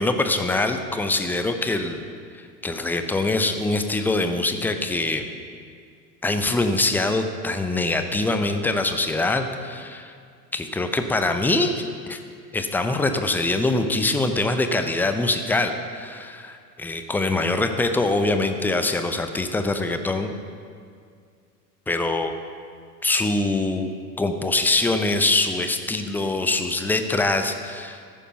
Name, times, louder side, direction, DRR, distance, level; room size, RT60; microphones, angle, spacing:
voice 1, 0.0-2.1 2.3-5.2 6.2-10.1 10.5-11.8 12.1-12.2 12.5-20.3 21.9-22.3 23.0-23.9 24.2-28.0, left 2 dB, 5° left, 7 dB, 0.6 m, -23 dB
13.5 x 9.9 x 5.7 m, 2.2 s
figure-of-eight pair, 85°, 49 cm